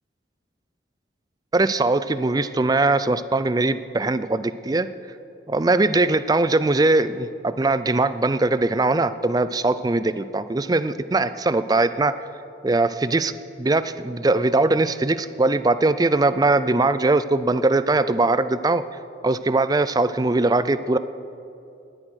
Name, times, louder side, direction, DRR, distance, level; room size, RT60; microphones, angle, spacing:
voice 1, 1.5-4.9 5.5-12.1 12.6-13.3 13.6-18.8 19.2-21.0, right 2 dB, 20° right, 13 dB, 0.4 m, -21 dB
19.0 x 9.9 x 6.4 m, 2.7 s
head